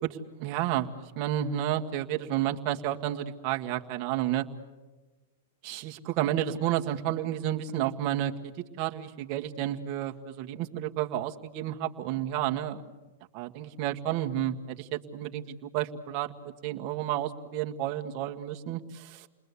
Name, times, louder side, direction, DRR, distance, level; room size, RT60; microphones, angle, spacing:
voice 1, 0.0-4.4 5.6-12.8 13.3-16.3 16.6-19.3, right 12 dB, 40° right, 3 dB, 1.7 m, -31 dB
30.0 x 21.0 x 8.4 m, 1.2 s
hypercardioid pair, 140°, 0 cm